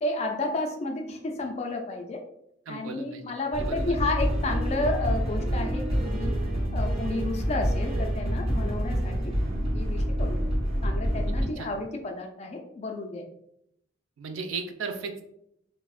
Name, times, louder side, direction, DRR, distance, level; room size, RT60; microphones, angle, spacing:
voice 1, 0.0-2.2 2.7-6.3 6.7-9.3 9.7-10.4 10.8-13.2, left 2 dB, 35° left, 3 dB, 0.3 m, -31 dB
voice 2, 2.7-3.2 3.6-4.0 11.4-11.7 14.2-15.2, right 4 dB, 80° right, 5 dB, 0.4 m, -36 dB
sound 1, 3.5-11.5, equal, 30° right, 0.5 m, -27 dB
3.2 x 2.0 x 2.3 m, 0.76 s
head